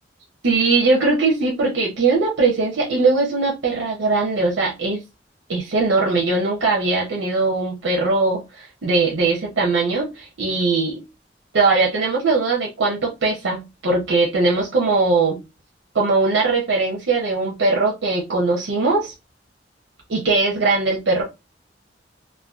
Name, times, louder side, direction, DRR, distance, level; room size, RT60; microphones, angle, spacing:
voice 1, 0.4-5.0 5.5-11.0 11.5-15.4 15.9-19.1 20.1-21.2, right 3 dB, 85° right, 0.6 m, -20 dB
2.5 x 2.1 x 2.3 m
head